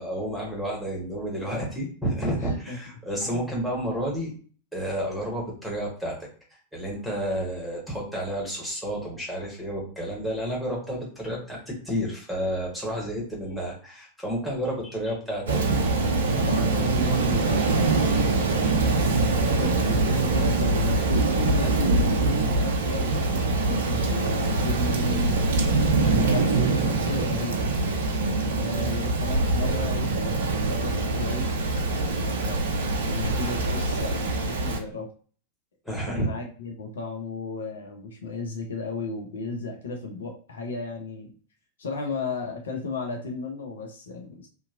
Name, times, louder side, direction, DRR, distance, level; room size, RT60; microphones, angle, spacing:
voice 1, 0.0-4.3 4.7-6.2 6.5-15.8 26.1-26.2 35.8-36.3, equal, ahead, -3 dB, 1.2 m, -30 dB
voice 2, 2.4-2.8 3.2-3.5 16.3-25.4 26.0-27.7 28.6-31.5 31.9-32.7 33.0-35.1 36.1-41.3 41.8-44.5, left 3 dB, 65° left, 1 dB, 0.5 m, -34 dB
Rain, 15.5-34.8, right 3 dB, 60° right, 0.4 m, -24 dB
2.8 x 2.3 x 2.6 m, 0.40 s
figure-of-eight pair, 90°, 0 cm